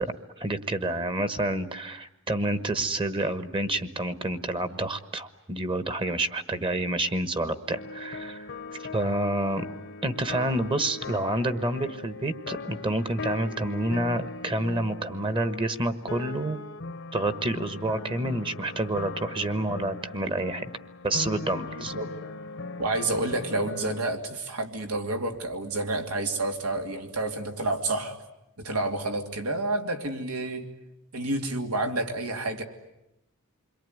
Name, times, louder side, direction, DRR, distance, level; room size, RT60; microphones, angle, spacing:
voice 1, 0.0-8.5 8.8-9.6 10.0-16.6 17.1-20.7 21.0-21.9, right 1 dB, 25° right, 12 dB, 1.2 m, -28 dB
sound 1, 7.7-24.0, left 3 dB, 60° left, 1.0 m, -39 dB
voice 2, 21.8-22.1 22.8-28.1 28.6-30.7 31.1-32.6, right 2 dB, 90° right, 4 dB, 2.8 m, -29 dB
28.0 x 22.5 x 9.4 m, 0.89 s
head